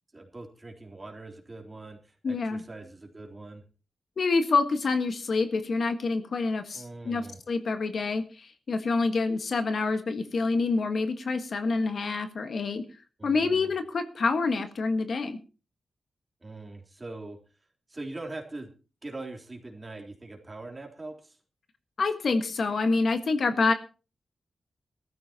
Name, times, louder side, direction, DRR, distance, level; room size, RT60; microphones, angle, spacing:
voice 1, 0.1-3.6 6.7-7.4 13.2-13.7 16.4-17.4 17.9-18.7 19.0-21.4, right 2 dB, 25° right, 2 dB, 3.6 m, -42 dB
voice 2, 2.2-2.6 4.2-12.8 13.2-15.4 22.0-23.7, left 3 dB, 60° left, 8 dB, 1.5 m, -27 dB
21.0 x 14.0 x 2.9 m, 0.34 s
wide cardioid pair, 100°, 0 cm